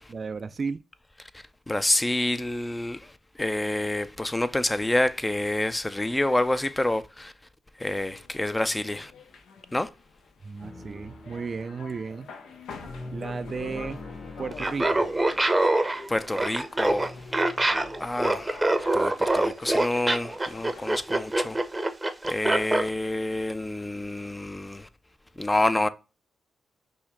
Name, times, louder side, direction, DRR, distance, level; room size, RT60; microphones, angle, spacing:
voice 1, 0.1-0.8 10.4-12.3 13.1-14.0 14.4-15.1, right 5 dB, 50° right, 0.3 m, -34 dB
voice 2, 1.7-3.1 3.4-7.3 7.8-9.1 9.7-9.9 16.1-17.1 18.0-18.6 18.9-21.6 22.3-24.9 25.4-25.9, left 1 dB, 15° left, 0.4 m, -27 dB
sound 1, 7.9-21.1, left 5 dB, 80° left, 0.6 m, -48 dB
sound 2, 10.6-18.8, left 2 dB, 45° left, 1.6 m, -44 dB
Laughter, 14.5-22.9, right 2 dB, 20° right, 0.7 m, -24 dB
5.6 x 2.1 x 3.6 m
supercardioid pair, 55°, 0 cm